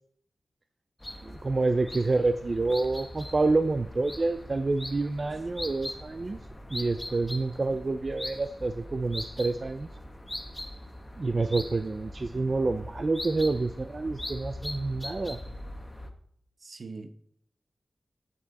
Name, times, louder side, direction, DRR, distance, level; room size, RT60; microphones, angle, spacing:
sound 1, 1.0-16.1, left 1 dB, 15° left, 1.1 m, -41 dB
voice 1, 1.2-6.4 6.7-9.9 11.2-15.4, right 3 dB, 40° right, 0.4 m, -28 dB
voice 2, 16.6-17.1, right 4 dB, 55° right, 0.8 m, -42 dB
9.2 x 8.5 x 4.1 m
wide cardioid pair, 120°, 0 cm